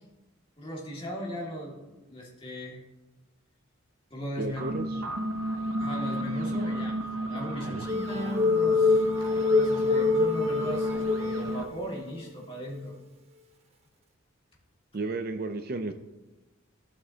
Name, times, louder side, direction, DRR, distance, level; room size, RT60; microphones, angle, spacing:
voice 1, 0.6-1.8 2.1-2.8 4.1-4.8 5.8-13.0, equal, 25° left, -3 dB, 2.0 m, -38 dB
voice 2, 4.4-5.0 7.6-7.9 14.9-15.9, right 3 dB, 45° right, 8 dB, 0.5 m, -33 dB
sound 1, 4.4-11.7, right 1 dB, 85° right, 0.8 m, -33 dB
sound 2, 7.9-11.7 12.2-12.3 12.7-12.8, left 3 dB, 30° right, 1.0 m, -25 dB
15.0 x 6.1 x 2.8 m, 1.1 s
head